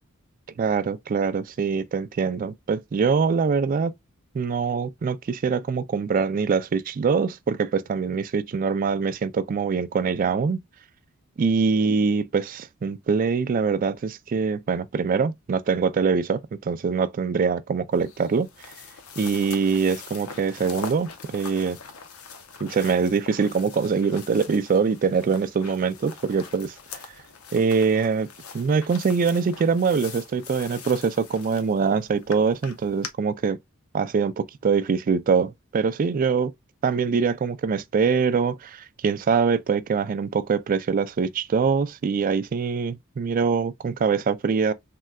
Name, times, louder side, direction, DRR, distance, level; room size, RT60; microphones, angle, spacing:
voice 1, 0.6-3.9 4.3-10.6 11.4-18.5 19.2-21.8 22.6-26.7 27.5-28.3 28.5-33.6 33.9-36.5 36.8-44.7, right 5 dB, 40° right, 0.3 m, -23 dB
Walking in a forest medium, 17.9-33.1, left 5 dB, 85° left, 0.6 m, -42 dB
3.6 x 2.1 x 2.2 m
head